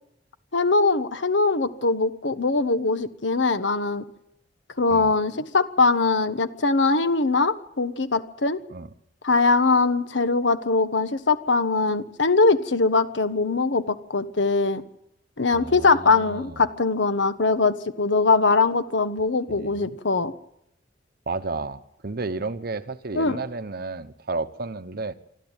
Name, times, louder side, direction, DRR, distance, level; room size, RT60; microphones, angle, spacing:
voice 1, 0.5-4.0 4.8-8.6 9.2-14.8 15.4-20.3 23.1-23.4, left 3 dB, 75° left, 11 dB, 1.3 m, -22 dB
voice 2, 15.5-16.6 19.5-20.0 21.3-25.1, right 3 dB, 55° right, 12 dB, 1.0 m, -32 dB
25.0 x 13.0 x 9.0 m, 0.79 s
head